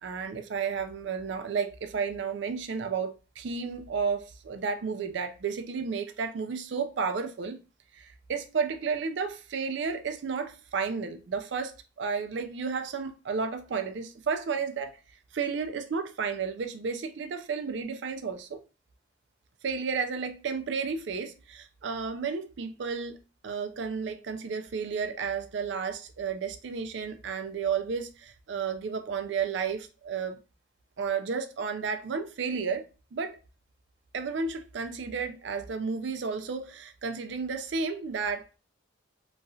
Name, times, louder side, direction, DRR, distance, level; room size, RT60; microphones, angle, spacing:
voice 1, 0.0-7.6 7.9-15.0 15.3-18.6 19.6-23.2 23.4-30.4 31.0-32.8 33.1-33.4 34.1-38.5, right 5 dB, 65° right, 0.4 m, -32 dB
3.0 x 2.3 x 2.6 m
head